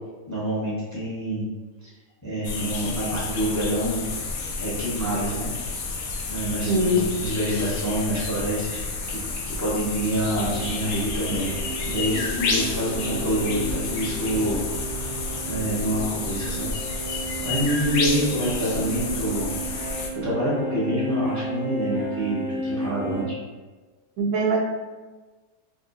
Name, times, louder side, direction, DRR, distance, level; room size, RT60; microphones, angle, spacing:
voice 1, 0.3-1.5 1.8-1.9 2.2-4.0 4.6-5.5 6.3-9.2 9.4-11.5 11.8-14.6 14.9-15.1 15.4-19.5 20.1-23.4, equal, 15° left, -7 dB, 0.9 m, -27 dB
sound 1, 2.4-20.1, left 3 dB, 75° left, 1.0 m, -30 dB
voice 2, 6.7-7.0 24.2-24.6, right 1 dB, 75° right, -2 dB, 1.0 m, -21 dB
sound 2, 10.2-23.2, right 2 dB, 35° left, 1.2 m, -33 dB
4.6 x 2.8 x 2.6 m, 1.3 s
omnidirectional pair, 1.6 m